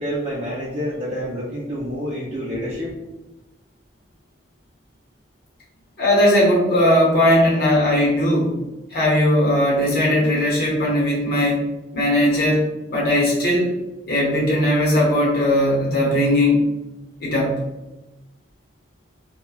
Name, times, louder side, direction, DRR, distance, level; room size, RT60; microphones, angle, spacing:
voice 1, 0.0-2.9, equal, 35° right, -8 dB, 0.5 m, -28 dB
voice 2, 6.0-8.6 8.9-11.7 11.9-13.7 14.1-16.7 17.2-17.6, left 1 dB, 55° left, -4 dB, 0.9 m, -18 dB
3.1 x 2.1 x 2.2 m, 1.0 s
head